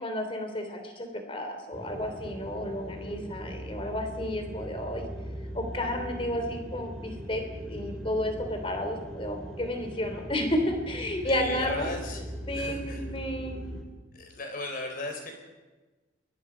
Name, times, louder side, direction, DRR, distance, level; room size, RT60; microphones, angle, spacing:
voice 1, 0.0-5.1 5.5-7.4 7.7-11.9 12.5-13.6, left 1 dB, 30° left, 5 dB, 3.3 m, -32 dB
sound 1, 1.7-13.8, equal, 5° left, 3.6 m, -39 dB
voice 2, 11.3-12.2 12.5-13.0 14.1-15.3, left 2 dB, 45° left, 4 dB, 4.6 m, -36 dB
27.5 x 22.0 x 5.2 m, 1.2 s
head